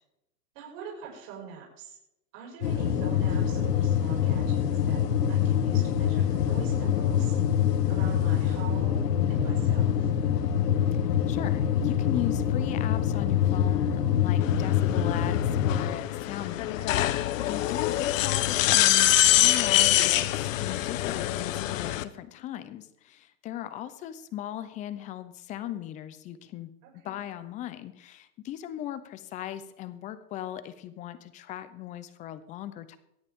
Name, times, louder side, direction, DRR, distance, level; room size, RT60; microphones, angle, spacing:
voice 1, 0.5-2.0 2.3-7.4 7.9-10.1 17.7-18.0 26.8-27.2, right 6 dB, 50° right, -2 dB, 6.1 m, -44 dB
sound 1, 2.6-15.9, left 9 dB, 85° left, 1.9 m, -25 dB
voice 2, 11.3-20.3 20.6-26.7 27.0-33.0, left 12 dB, 15° left, 12 dB, 0.6 m, -38 dB
sound 2, 14.4-22.0, left 14 dB, 55° left, 1.0 m, -25 dB
22.5 x 9.6 x 3.6 m, 0.85 s
hypercardioid pair, 145°, 48 cm